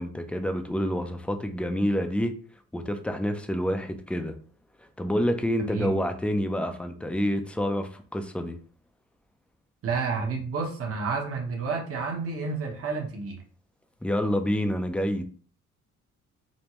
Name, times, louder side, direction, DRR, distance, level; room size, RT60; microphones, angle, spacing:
voice 1, 0.0-2.4 2.7-4.3 5.0-8.6 14.0-15.2, equal, 5° left, 0.5 m, -28 dB
voice 2, 5.6-5.9 9.8-13.4, right 4 dB, 50° right, 1.1 m, -30 dB
5.2 x 2.1 x 3.0 m
cardioid pair, 90°, 30 cm